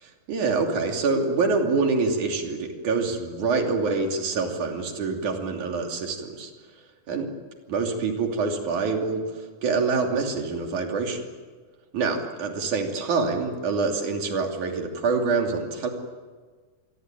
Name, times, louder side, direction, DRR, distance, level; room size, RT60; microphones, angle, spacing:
voice 1, 0.0-6.5 7.1-7.3 7.7-9.2 9.6-11.2 11.9-15.9, right 4 dB, 65° right, 2 dB, 4.4 m, -26 dB
27.0 x 22.5 x 9.1 m, 1.4 s
omnidirectional pair, 3.9 m